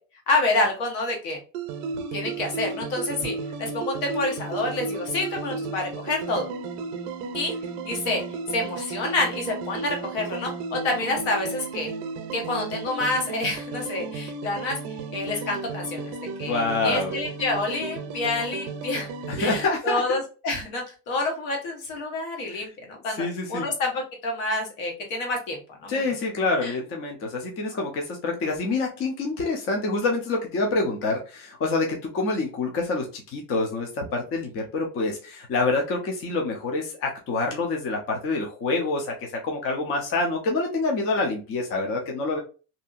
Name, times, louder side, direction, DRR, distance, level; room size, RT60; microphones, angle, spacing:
voice 1, 0.3-1.4 2.1-6.5 7.3-7.5 7.8-8.2 8.5-11.9 12.3-16.1 16.4-19.1 19.4-26.0 26.6-26.7, left 2 dB, 65° left, 1 dB, 1.3 m, -28 dB
sound 1, 1.5-19.7, right 4 dB, 75° right, 0.6 m, -34 dB
voice 2, 16.4-17.1 19.3-20.0 22.5-22.7 23.2-23.7 25.9-42.4, left 3 dB, 30° left, 1 dB, 0.5 m, -27 dB
2.7 x 2.6 x 2.4 m, 0.34 s
cardioid pair, 145°, 48 cm